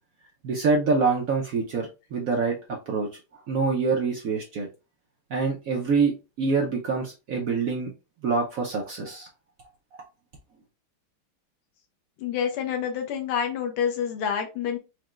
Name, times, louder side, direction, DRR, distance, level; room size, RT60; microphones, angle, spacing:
voice 1, 0.4-3.1 3.5-4.7 5.3-7.9 8.2-9.3, right 4 dB, 75° right, 0 dB, 0.7 m, -25 dB
voice 2, 12.2-14.8, left 8 dB, 85° left, 4 dB, 1.7 m, -28 dB
4.7 x 2.2 x 3.0 m, 0.29 s
omnidirectional pair, 2.4 m